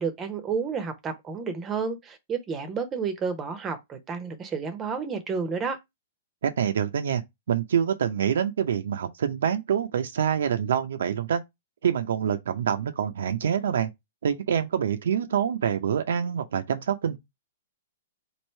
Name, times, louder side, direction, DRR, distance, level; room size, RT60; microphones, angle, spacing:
voice 1, 0.0-5.8, right 5 dB, 20° right, 0.7 m, -31 dB
voice 2, 6.4-7.2 7.5-11.4 11.8-13.9 14.2-17.2, right 8 dB, 75° right, 0.4 m, -26 dB
3.2 x 2.6 x 4.2 m
hypercardioid pair, 135°, 0 cm